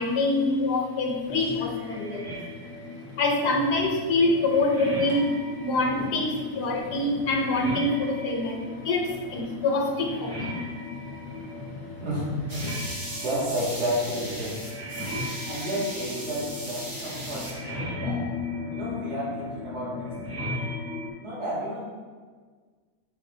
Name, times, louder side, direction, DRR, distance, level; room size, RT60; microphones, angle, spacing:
voice 1, 0.0-2.3 3.2-5.3 5.6-10.6, left 2 dB, 80° left, 1 dB, 1.4 m, -25 dB
sound 1, 1.2-21.1, left 2 dB, 10° right, 1.4 m, -36 dB
voice 2, 12.0-12.9 13.2-14.6 15.5-18.2 18.7-20.5 21.2-21.8, equal, 70° right, -9 dB, 2.7 m, -31 dB
sound 2, 12.5-17.5, right 1 dB, 30° right, 1.1 m, -38 dB
8.6 x 5.1 x 2.7 m, 1.5 s
omnidirectional pair, 1.7 m